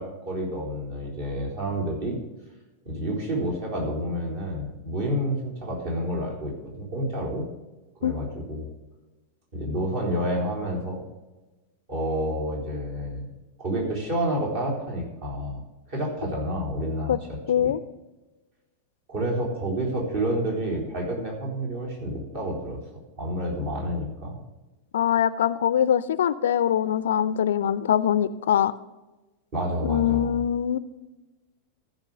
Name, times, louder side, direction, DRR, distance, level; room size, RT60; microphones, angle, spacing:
voice 1, 0.0-2.2 2.8-7.5 8.0-8.7 9.5-11.0 11.9-13.2 13.6-15.6 15.9-17.7 19.1-22.8 23.2-24.4 29.5-30.4, equal, 50° right, -2 dB, 3.8 m, -29 dB
voice 2, 17.5-17.8 24.9-28.7 29.8-30.8, left 9 dB, 60° left, 16 dB, 0.4 m, -23 dB
14.5 x 5.1 x 6.3 m, 1.1 s
figure-of-eight pair, 90°, 0 cm